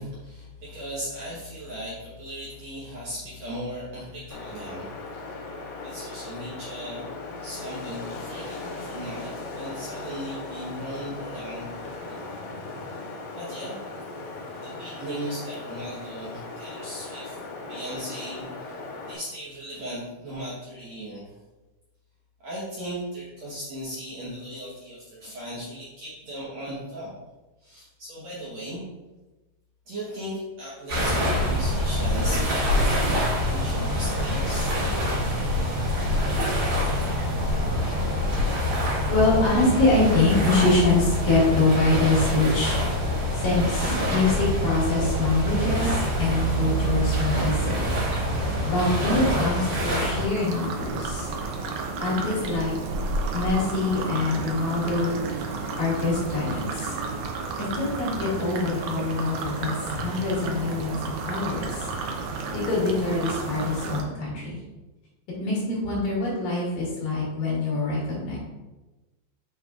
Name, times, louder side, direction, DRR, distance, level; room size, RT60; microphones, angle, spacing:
voice 1, 0.0-7.1 7.4-12.3 13.4-13.8 14.6-17.4 17.7-18.7 19.1-21.4 22.4-27.1 27.6-28.9 29.9-34.7, equal, 60° right, -7 dB, 1.9 m, -37 dB
Wind, 4.3-19.2, left 3 dB, 85° left, 3.0 m, -38 dB
sound 1, 30.9-50.3, equal, 45° right, 2.7 m, -25 dB
voice 2, 39.1-42.8 43.3-47.8 48.7-51.3 52.0-52.7 53.3-55.2 55.8-56.9 57.6-61.0 61.3-61.9 62.5-64.6 65.4-68.4, left 2 dB, 65° left, -6 dB, 3.7 m, -24 dB
sound 2, 50.3-64.0, right 3 dB, 80° right, 1.7 m, -32 dB
7.3 x 5.7 x 2.5 m, 1.1 s
omnidirectional pair, 4.4 m